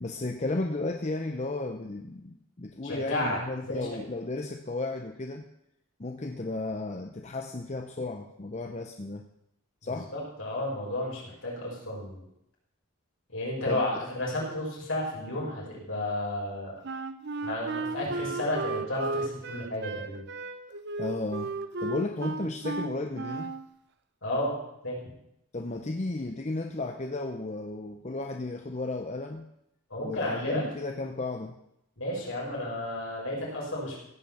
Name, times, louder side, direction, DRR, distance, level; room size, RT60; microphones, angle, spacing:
voice 1, 0.0-5.5 6.0-9.2 9.8-10.1 13.7-14.0 21.0-23.5 25.5-29.4 30.0-31.6, left 2 dB, 30° left, 4 dB, 0.7 m, -34 dB
voice 2, 2.8-3.4 3.7-3.9 9.9-12.2 13.3-16.7 17.4-20.2 24.2-24.6 24.8-25.0 29.9-30.6 32.0-34.0, left 1 dB, 65° left, -4 dB, 5.6 m, -32 dB
Wind instrument woodwind instrument, 16.8-23.7, right 3 dB, 50° right, 0.7 m, -34 dB
16.5 x 6.1 x 7.0 m, 0.81 s
head